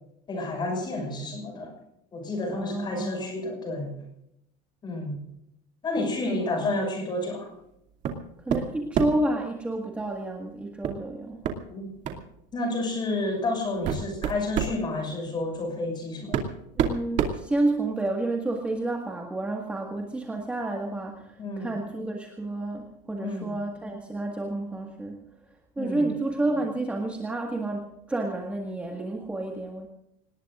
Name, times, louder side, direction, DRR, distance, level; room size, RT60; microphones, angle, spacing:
voice 1, 0.3-1.7 2.1-3.9 4.8-5.2 5.8-7.5 11.7-11.9 12.5-16.4 21.4-21.7 23.2-23.5 25.8-26.0, left 2 dB, 20° left, 4 dB, 6.1 m, -30 dB
voice 2, 2.5-3.3 6.0-6.7 8.5-11.4 16.8-25.2 25.8-29.9, right 2 dB, 5° right, 0 dB, 1.8 m, -30 dB
sound 1, 8.0-8.2 8.5-9.3 10.8-11.0 11.4-11.6 12.0-12.2 13.1-13.2 13.6-14.8 15.8-15.9 16.3-18.1, right 7 dB, 35° right, 2.5 m, -28 dB
26.5 x 20.0 x 2.5 m, 0.80 s
cardioid pair, 175°, 21 cm